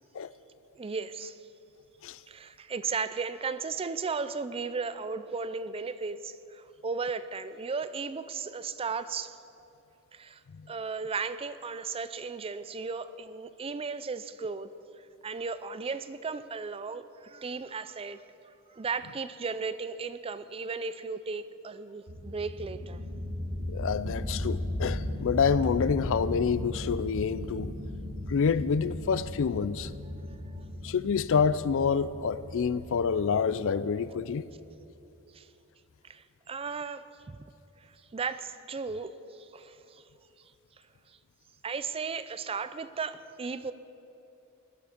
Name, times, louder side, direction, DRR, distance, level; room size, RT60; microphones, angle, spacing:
voice 1, 0.7-1.4 2.3-9.4 10.1-10.4 10.7-14.7 15.0-18.2 18.7-23.0 30.2-30.7 35.3-35.5 36.0-37.4 37.8-40.1 41.1-41.2 41.6-43.7, right 5 dB, 25° right, 0.4 m, -36 dB
sound 1, 22.1-34.5, left 1 dB, 70° right, 2.7 m, -37 dB
voice 2, 23.7-27.7 28.3-29.9 30.8-34.4, left 6 dB, 60° left, 0.4 m, -27 dB
20.0 x 11.0 x 5.1 m
head